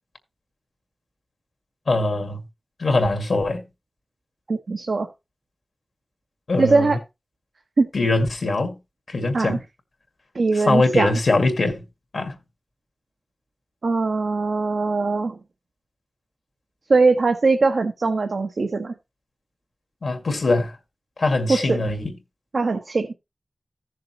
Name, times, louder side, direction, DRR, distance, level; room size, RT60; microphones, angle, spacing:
voice 1, 1.9-2.4 2.8-3.6 6.5-7.0 7.9-8.7 9.1-9.6 10.5-11.8 12.1-12.4 20.0-20.8 21.2-22.1, left 2 dB, 85° left, 1.9 m, -22 dB
voice 2, 4.5-5.1 6.6-7.0 7.8-7.9 9.3-9.6 10.3-11.1 13.8-15.4 16.9-18.9 21.5-21.8 22.5-23.1, right 3 dB, 85° right, 1.1 m, -21 dB
15.0 x 6.6 x 2.9 m
cardioid pair, 45°, 0 cm